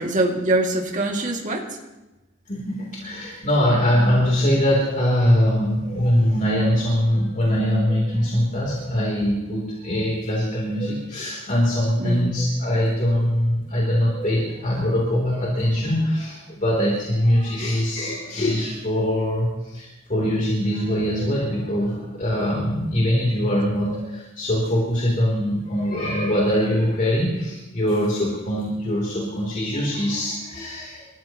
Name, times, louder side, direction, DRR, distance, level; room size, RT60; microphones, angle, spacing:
voice 1, 0.0-1.8 12.0-12.3, right 2 dB, 40° right, 0 dB, 2.3 m, -23 dB
voice 2, 2.5-31.1, equal, 40° left, -4 dB, 3.4 m, -22 dB
28.0 x 15.0 x 3.0 m, 1.0 s
head